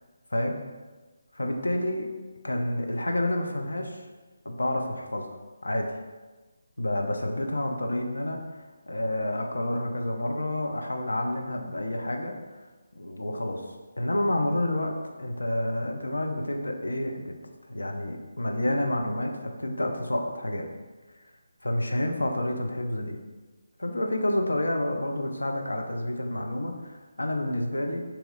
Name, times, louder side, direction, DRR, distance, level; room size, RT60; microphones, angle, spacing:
voice 1, 1.3-2.1 2.4-4.1 4.4-5.3 5.6-5.9 6.8-12.4 13.0-13.6 14.0-17.3 17.7-20.7 21.6-23.2 23.8-28.0, left 1 dB, 75° left, 2 dB, 0.5 m, -29 dB
3.0 x 2.9 x 3.8 m, 1.3 s
figure-of-eight pair, 150°, 0 cm